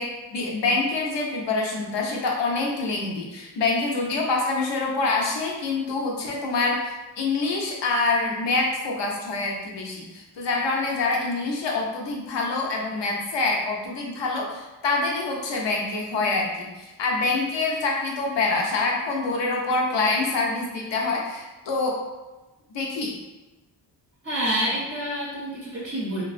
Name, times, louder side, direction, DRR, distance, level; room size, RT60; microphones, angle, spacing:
voice 1, 0.0-22.0 22.7-23.2, left 3 dB, 70° left, -1 dB, 0.7 m, -26 dB
voice 2, 24.2-26.2, right 1 dB, 30° right, -6 dB, 0.6 m, -27 dB
2.3 x 2.2 x 2.4 m, 1.1 s
cardioid pair, 80°, 44 cm